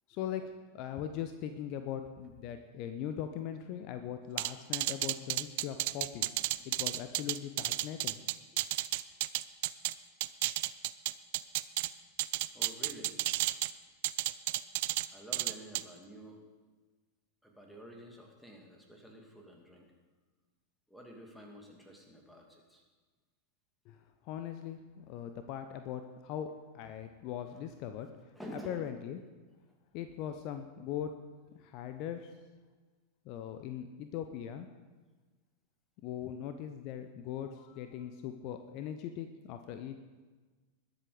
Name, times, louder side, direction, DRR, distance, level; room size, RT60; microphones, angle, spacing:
voice 1, 0.1-0.4 0.7-6.3 6.6-8.2 23.9-24.0 24.2-26.5 26.7-28.1 28.7-29.2 29.9-31.1 31.5-32.3 33.3-34.7 36.0-40.0, left 10 dB, 40° left, 8 dB, 0.8 m, -40 dB
sound 1, 4.4-9.9 10.2-11.9 12.2-13.7 14.0-15.1 15.3-15.8, right 18 dB, 50° right, 0.5 m, -32 dB
voice 2, 12.5-13.2 15.1-16.4 17.4-19.9 20.9-22.8 28.3-28.8, equal, ahead, 0 dB, 2.6 m, -49 dB
21.0 x 7.9 x 5.1 m, 1.3 s
figure-of-eight pair, 90°, 0 cm